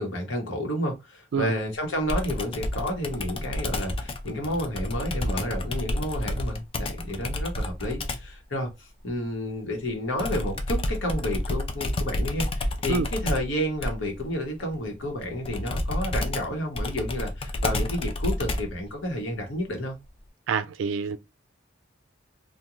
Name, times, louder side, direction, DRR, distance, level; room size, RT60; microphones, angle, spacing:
voice 1, 0.0-20.0, equal, 85° left, 1.0 m, -31 dB
Computer keyboard, 2.1-8.4 10.2-18.8, left 1 dB, 30° left, 0.4 m, -30 dB
voice 2, 20.5-21.2, right 5 dB, 80° right, 0.3 m, -27 dB
2.5 x 2.2 x 2.9 m
head